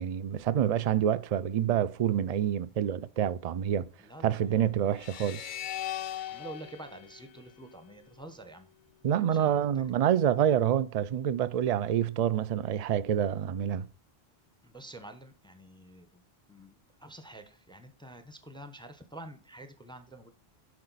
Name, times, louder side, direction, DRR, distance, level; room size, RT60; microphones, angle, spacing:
voice 1, 0.0-3.9 4.2-5.5 9.0-13.9, right 9 dB, 50° right, 0.5 m, -27 dB
voice 2, 4.0-4.4 4.7-5.0 6.0-8.7 9.2-9.8 14.6-16.2 16.5-20.3, right 1 dB, 5° left, 0.8 m, -48 dB
sound 1, 5.0-8.2, left 11 dB, 60° left, 0.6 m, -40 dB
10.5 x 4.9 x 4.0 m
omnidirectional pair, 1.1 m